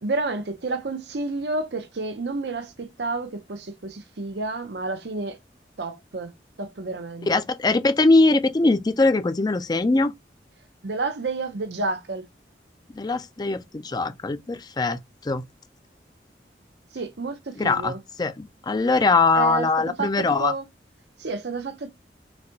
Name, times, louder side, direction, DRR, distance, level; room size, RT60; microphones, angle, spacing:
voice 1, 0.0-5.4 5.8-6.3 6.6-7.3 10.8-12.2 16.9-18.0 19.3-20.6 21.2-21.9, right 3 dB, 75° right, 0.7 m, -30 dB
voice 2, 7.3-10.1 12.9-15.4 17.6-17.9 18.2-20.5, left 3 dB, 25° left, 0.4 m, -21 dB
4.1 x 2.2 x 2.7 m
head